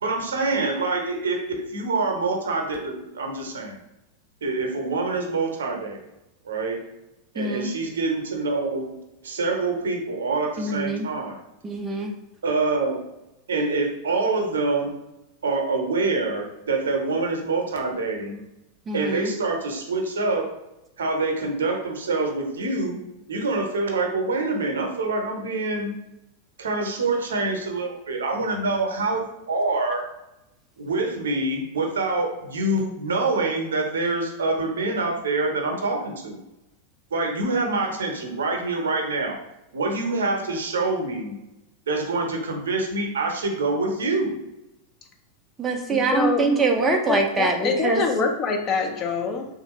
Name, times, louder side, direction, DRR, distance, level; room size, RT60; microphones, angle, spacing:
voice 1, 0.0-3.8 4.4-6.0 6.4-6.8 7.3-8.9 9.2-11.4 12.4-13.0 13.5-15.0 15.4-18.4 18.9-20.5 21.0-23.0 23.3-26.0 26.6-30.1 30.8-36.4 37.1-39.4 39.7-41.4 41.9-44.4, right 3 dB, 65° right, 2 dB, 0.7 m, -26 dB
voice 2, 7.4-7.7 10.6-11.1 11.6-12.1 18.9-19.3 45.6-48.0, right 3 dB, 20° right, 3 dB, 0.4 m, -24 dB
voice 3, 45.9-46.4 46.8-49.5, left 5 dB, 30° left, 3 dB, 0.5 m, -25 dB
3.4 x 2.5 x 3.0 m, 0.91 s
figure-of-eight pair, 90°, 0 cm